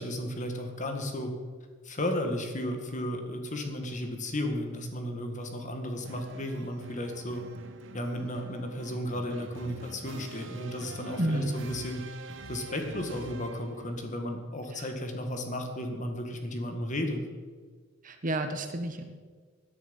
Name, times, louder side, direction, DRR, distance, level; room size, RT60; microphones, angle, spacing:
voice 1, 0.0-1.3 1.8-7.4 7.9-12.1 12.5-17.2, left 1 dB, 40° left, 4 dB, 2.0 m, -34 dB
sound 1, 6.0-13.9, right 3 dB, 65° right, 1.0 m, -46 dB
voice 2, 11.2-11.5 14.7-14.9 18.0-19.0, right 1 dB, 40° right, 6 dB, 1.3 m, -30 dB
17.0 x 10.5 x 5.5 m, 1.5 s
head